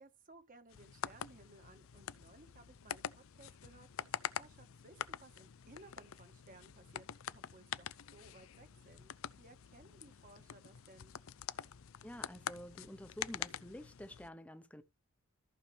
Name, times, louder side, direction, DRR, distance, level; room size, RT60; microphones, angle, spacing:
voice 1, 0.0-11.2, right 2 dB, 40° right, 1.5 m, -60 dB
sound 1, 0.7-14.3, left 9 dB, 75° left, 0.5 m, -46 dB
voice 2, 12.0-14.8, equal, 5° left, 0.8 m, -49 dB
14.0 x 5.7 x 3.4 m
head